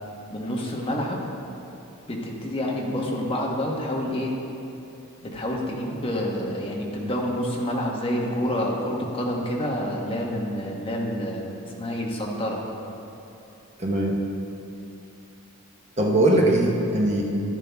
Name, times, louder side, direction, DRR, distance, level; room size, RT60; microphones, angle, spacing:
voice 1, 0.3-1.2 2.1-4.3 5.2-12.6, equal, 25° left, -2 dB, 1.2 m, -28 dB
voice 2, 13.8-14.2 16.0-17.2, right 1 dB, 30° right, -1 dB, 0.9 m, -20 dB
12.0 x 10.5 x 3.5 m, 2.9 s
head